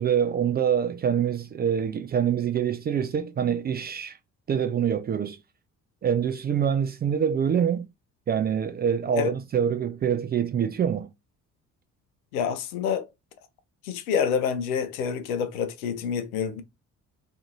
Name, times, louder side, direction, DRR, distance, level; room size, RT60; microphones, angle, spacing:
voice 1, 0.0-4.2 4.5-5.4 6.0-7.8 8.3-11.1, right 8 dB, 25° right, 0.3 m, -25 dB
voice 2, 12.3-13.1 13.8-16.6, left 7 dB, 75° left, 0.6 m, -27 dB
2.7 x 2.5 x 2.4 m
figure-of-eight pair, 45°, 44 cm